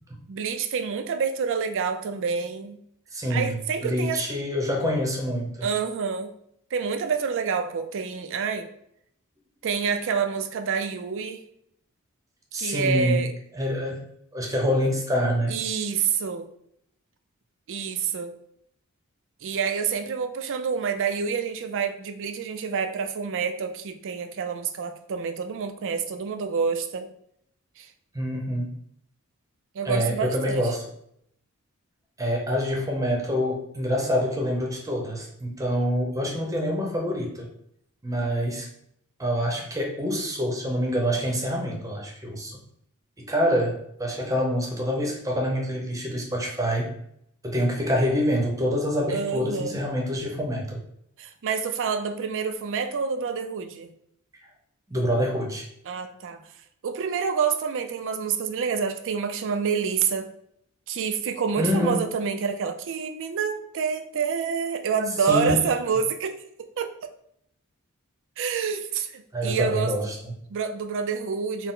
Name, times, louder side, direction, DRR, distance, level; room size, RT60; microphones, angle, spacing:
voice 1, 0.3-2.8 3.3-4.2 5.6-6.3 6.7-8.7 9.6-11.4 12.5-13.3 15.5-16.5 17.7-18.3 19.4-27.1 27.8-27.9 29.7-30.7 49.1-49.8 51.2-53.9 55.9-56.4 56.8-60.3 60.9-66.4 66.8-67.1 68.4-69.9 70.5-71.7, right 6 dB, 60° right, 7 dB, 0.4 m, -27 dB
voice 2, 3.1-5.7 12.5-13.2 13.5-14.0 14.3-15.5 28.1-28.7 29.8-30.8 32.2-37.5 38.0-38.7 39.2-42.6 43.2-46.9 47.4-50.8 54.9-55.7 61.6-62.0 65.3-65.6 69.3-70.3, equal, 15° right, 0 dB, 0.7 m, -26 dB
4.2 x 2.1 x 3.7 m, 0.71 s
head